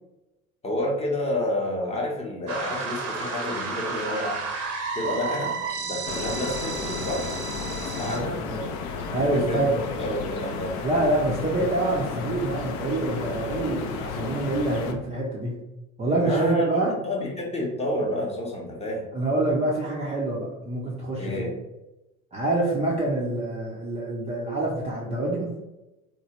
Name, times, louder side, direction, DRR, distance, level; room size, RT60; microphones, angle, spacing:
voice 1, 0.6-4.4 4.9-7.3 7.9-8.4 9.2-10.8 16.1-19.1 21.2-21.6, left 1 dB, 15° left, -2 dB, 0.7 m, -29 dB
sound 1, 2.5-8.2, right 4 dB, 60° right, 0.8 m, -32 dB
sound 2, 6.1-14.9, left 5 dB, 45° left, 0.5 m, -33 dB
voice 2, 8.0-8.7 9.1-9.8 10.8-15.6 16.0-16.9 19.1-21.3 22.3-25.5, right 2 dB, 15° right, -5 dB, 0.5 m, -26 dB
3.1 x 2.1 x 2.9 m, 0.97 s
figure-of-eight pair, 70°, 41 cm